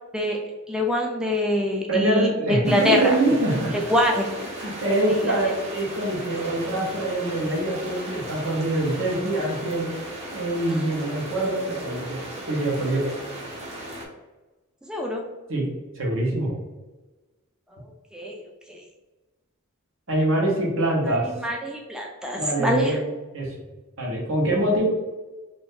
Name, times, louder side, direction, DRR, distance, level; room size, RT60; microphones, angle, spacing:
voice 1, 0.7-3.1 3.7-4.3 5.2-5.5 14.9-15.2 17.7-17.8 18.1-18.4 18.7-18.8 21.3-22.9, left 1 dB, 5° right, 0 dB, 0.3 m, -24 dB
voice 2, 1.9-3.7 4.6-9.9 10.3-12.2 12.5-13.1 15.5-15.6 15.9-16.5 20.1-21.3 22.4-23.5 24.0-24.9, right 1 dB, 60° right, -3 dB, 1.0 m, -24 dB
sound 1, 2.6-14.1, right 1 dB, 30° right, 0.7 m, -36 dB
2.6 x 2.6 x 3.5 m, 1.2 s
head